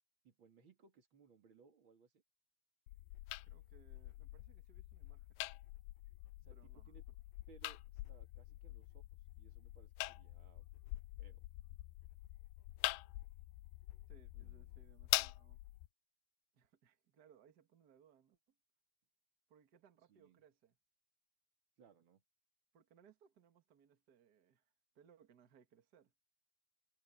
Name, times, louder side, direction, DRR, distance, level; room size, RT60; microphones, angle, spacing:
voice 1, 0.2-2.2 6.4-7.0 7.5-9.1 9.4-10.7 11.2-11.5 14.3-14.9 20.1-20.4 21.8-22.2, right 6 dB, 35° right, 2.4 m, -66 dB
sound 1, 2.9-15.9, left 19 dB, 85° left, 2.0 m, -45 dB
voice 2, 3.4-5.5 6.5-7.0 14.1-15.6 16.5-18.4 19.5-20.8 22.7-26.1, right 7 dB, 80° right, 0.9 m, -68 dB
omnidirectional pair, 4.6 m